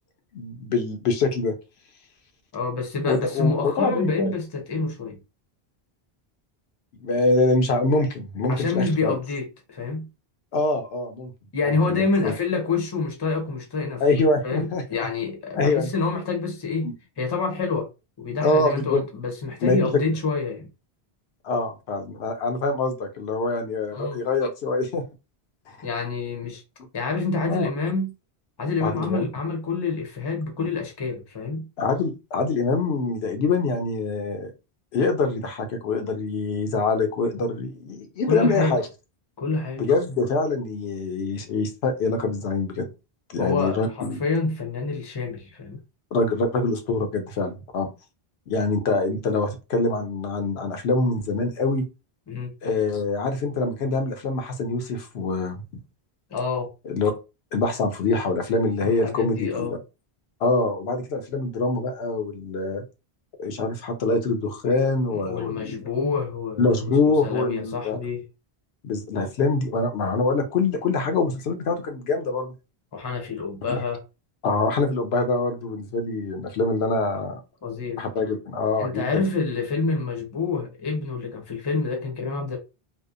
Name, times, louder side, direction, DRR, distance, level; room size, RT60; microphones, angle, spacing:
voice 1, 0.3-1.5 3.1-4.3 7.0-9.2 10.5-11.3 11.6-12.3 14.0-14.8 15.5-15.9 16.8-16.9 18.4-19.0 19.6-19.8 21.4-25.0 25.7-25.9 27.5-27.7 28.8-29.3 31.8-34.5 34.9-38.8 39.8-42.9 43.3-44.2 46.1-47.9 48.5-51.8 52.6-55.6 56.8-57.1 57.5-59.8 60.4-62.8 63.4-65.7 66.6-68.0 68.8-72.5 73.7-73.8 74.4-77.4 78.0-79.2, left 3 dB, 80° left, 0.8 m, -24 dB
voice 2, 2.5-5.2 8.5-10.1 11.5-14.0 14.4-17.9 18.2-20.7 23.9-24.2 25.8-26.6 26.9-28.1 28.6-31.7 38.3-38.8 39.4-39.9 43.4-45.8 52.3-52.5 56.3-56.7 58.8-59.7 65.3-66.9 67.2-68.2 72.9-74.0 77.6-78.0 78.8-82.6, left 4 dB, 30° left, 0.6 m, -27 dB
2.7 x 2.0 x 2.4 m
omnidirectional pair, 1.1 m